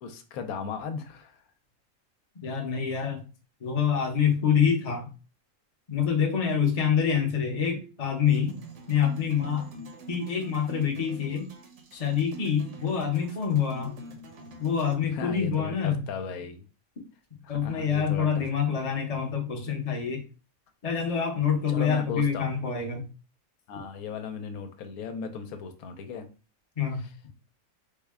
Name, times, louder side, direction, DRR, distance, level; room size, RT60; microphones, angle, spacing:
voice 1, 0.0-1.4 15.0-16.7 17.4-18.4 21.7-22.5 23.7-26.3 27.0-27.1, left 6 dB, 90° left, 7 dB, 1.1 m, -36 dB
voice 2, 2.3-3.2 3.6-5.1 5.9-8.6 8.9-9.7 10.1-11.5 11.9-14.0 14.6-16.1 17.5-20.2 20.8-23.1 26.8-27.1, left 7 dB, 35° left, 2 dB, 0.7 m, -26 dB
sound 1, 8.3-14.9, right 3 dB, 60° right, 1.0 m, -46 dB
3.5 x 2.2 x 3.5 m, 0.32 s
omnidirectional pair, 1.5 m